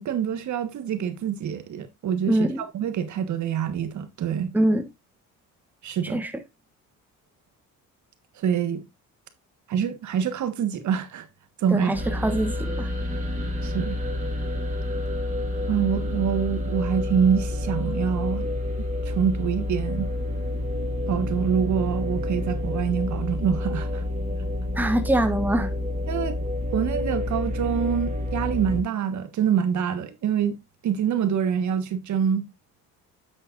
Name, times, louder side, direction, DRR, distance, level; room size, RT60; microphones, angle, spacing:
voice 1, 0.0-4.5 5.8-6.2 8.4-8.8 9.7-11.3 11.6-11.9 13.6-14.0 15.7-18.5 19.0-20.1 21.1-24.0 26.1-26.4 26.7-30.6 30.8-32.4, right 8 dB, 60° right, 1.4 m, -25 dB
voice 2, 2.3-2.6 4.5-4.9 6.0-6.3 11.7-12.9 24.7-25.7, right 1 dB, 5° right, 1.2 m, -23 dB
sound 1, 11.9-28.8, left 1 dB, 25° right, 2.9 m, -29 dB
9.4 x 8.0 x 2.5 m
cardioid pair, 95°, 32 cm